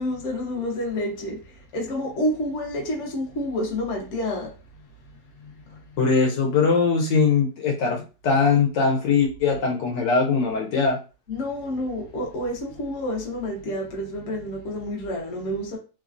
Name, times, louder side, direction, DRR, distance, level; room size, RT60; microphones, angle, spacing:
voice 1, 0.0-4.5 5.4-5.8 11.3-15.8, left 1 dB, 50° left, 0.9 m, -29 dB
voice 2, 6.0-11.0, left 5 dB, 70° left, 1.4 m, -21 dB
3.2 x 2.2 x 2.5 m
omnidirectional pair, 2.0 m